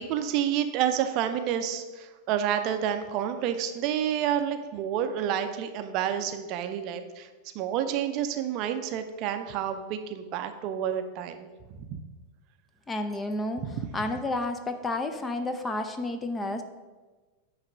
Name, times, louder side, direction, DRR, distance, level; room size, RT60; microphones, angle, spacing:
voice 1, 0.0-7.3 7.5-11.5 11.9-12.0 13.7-13.8, right 9 dB, 40° right, 8 dB, 0.6 m, -29 dB
voice 2, 12.9-13.7 13.9-16.6, left 2 dB, 15° left, 7 dB, 0.6 m, -31 dB
9.6 x 3.2 x 6.1 m, 1.3 s
figure-of-eight pair, 90°, 0 cm